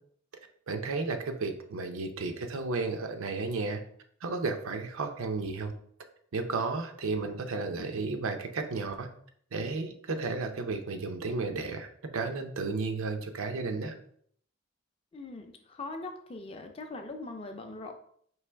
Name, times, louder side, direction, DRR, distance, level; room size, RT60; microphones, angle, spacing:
voice 1, 0.7-3.8 4.2-5.7 6.3-9.1 9.5-13.9, right 3 dB, 90° right, 6 dB, 0.6 m, -33 dB
voice 2, 15.1-17.9, left 2 dB, 30° left, 4 dB, 0.4 m, -41 dB
4.7 x 3.0 x 3.3 m, 0.63 s
head